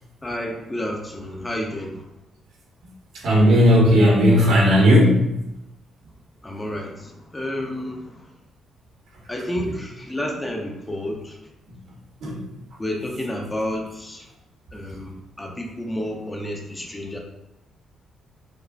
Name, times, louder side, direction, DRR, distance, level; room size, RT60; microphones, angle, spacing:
voice 1, 0.2-2.0 6.4-8.2 9.3-11.4 12.8-14.3 14.7-17.2, left 1 dB, 15° left, 1 dB, 0.6 m, -30 dB
voice 2, 3.2-5.3 9.6-9.7 12.2-12.4, equal, 70° right, -2 dB, 1.1 m, -15 dB
5.1 x 2.0 x 2.6 m, 0.89 s
cardioid pair, 90°, 0 cm